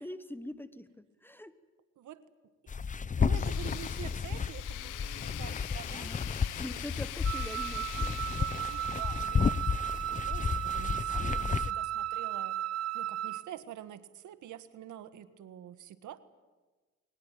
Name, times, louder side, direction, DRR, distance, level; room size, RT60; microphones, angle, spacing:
voice 1, 0.0-1.5 5.9-6.3 6.6-8.2 11.1-11.5, left 1 dB, 5° left, 13 dB, 1.3 m, -44 dB
sound 1, 2.7-11.7, left 5 dB, 25° left, 0.7 m, -32 dB
voice 2, 3.2-6.8 8.4-12.6 12.9-16.2, right 11 dB, 75° right, 12 dB, 1.6 m, -47 dB
Tools, 3.4-9.2, left 15 dB, 90° left, 1.0 m, -44 dB
Wind instrument woodwind instrument, 7.2-13.5, right 12 dB, 55° right, 0.8 m, -35 dB
22.5 x 19.5 x 9.1 m, 1.3 s
cardioid pair, 90°, 30 cm